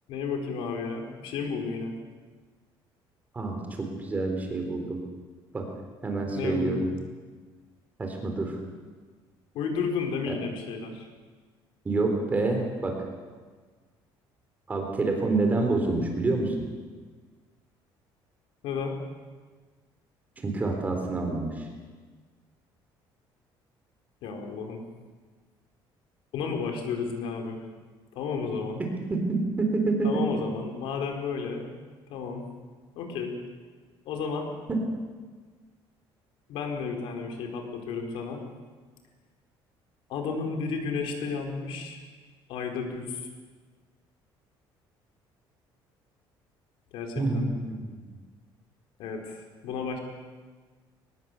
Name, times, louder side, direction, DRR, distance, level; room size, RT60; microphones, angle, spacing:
voice 1, 0.1-1.9 6.3-6.8 9.5-11.1 18.6-19.0 24.2-24.8 26.3-27.6 28.1-28.8 30.0-31.7 32.1-32.4 32.9-33.4 34.0-34.5 36.5-38.4 40.1-42.0 42.5-43.3 46.9-47.5 49.0-50.0, left 5 dB, 75° left, 3 dB, 4.7 m, -32 dB
voice 2, 3.3-5.0 5.5-5.7 6.0-6.9 8.0-8.6 10.3-10.4 11.9-13.0 14.7-16.5 20.4-21.7 29.1-30.2 34.7-34.8 47.2-48.0, right 3 dB, 20° right, 3 dB, 3.9 m, -27 dB
23.0 x 20.5 x 8.5 m, 1.5 s
cardioid pair, 160°, 9 cm